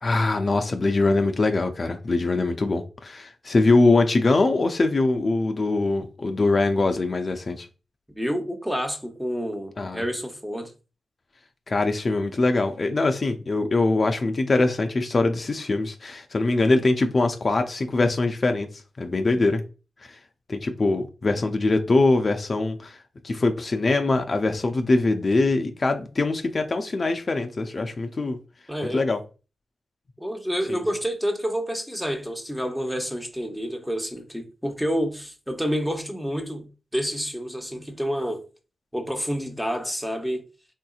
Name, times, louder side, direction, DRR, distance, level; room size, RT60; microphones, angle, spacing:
voice 1, 0.0-7.7 9.8-10.0 11.7-18.7 19.0-19.6 20.0-20.2 20.5-28.4 28.9-29.2 30.7-30.8, left 2 dB, 50° left, 0.5 m, -23 dB
voice 2, 8.2-10.7 28.7-29.1 30.2-36.7 36.9-38.4 38.9-40.4, equal, 5° right, 0.9 m, -28 dB
3.6 x 2.7 x 2.4 m
cardioid pair, 50°, 0 cm